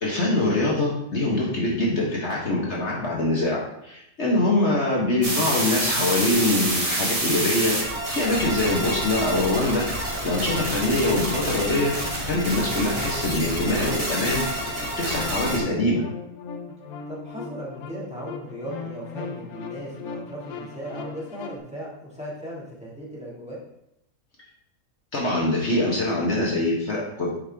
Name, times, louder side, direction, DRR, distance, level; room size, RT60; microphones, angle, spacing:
voice 1, 0.0-7.7 8.1-11.9 12.2-14.4 15.0-16.0 25.1-27.3, left 2 dB, 50° left, -4 dB, 1.4 m, -24 dB
voice 2, 4.2-4.5 10.7-10.8 17.1-23.6, equal, 5° right, -6 dB, 1.8 m, -37 dB
sound 1, 5.2-15.6, right 1 dB, 25° right, 1.5 m, -28 dB
sound 2, 11.3-21.6, left 5 dB, 85° left, 1.2 m, -39 dB
7.4 x 5.5 x 3.4 m, 0.81 s
omnidirectional pair, 1.5 m